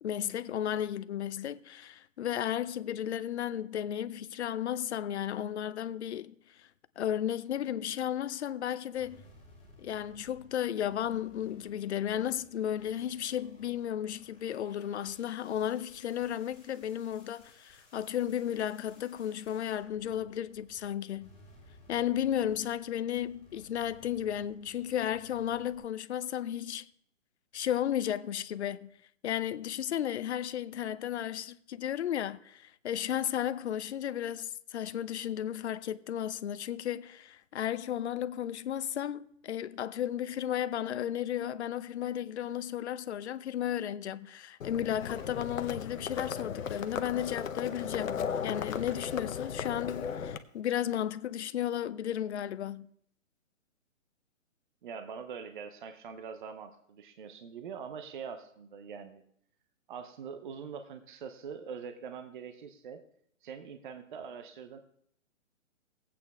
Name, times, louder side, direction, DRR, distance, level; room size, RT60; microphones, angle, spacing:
voice 1, 0.0-6.7 7.0-9.2 9.8-21.3 21.9-26.9 27.5-28.9 29.2-52.9, left 10 dB, 60° left, 0.6 m, -34 dB
sound 1, 8.9-20.9 21.2-25.8, left 2 dB, 15° left, 4.4 m, -59 dB
Livestock farm animals working animals, 44.6-50.4, left 7 dB, 85° left, 0.9 m, -36 dB
sound 2, 45.0-50.2, left 6 dB, 35° left, 2.2 m, -56 dB
voice 2, 54.8-59.2 59.9-63.0 63.4-64.8, right 6 dB, 40° right, 0.8 m, -43 dB
18.0 x 8.6 x 3.5 m
hypercardioid pair, 155°, 39 cm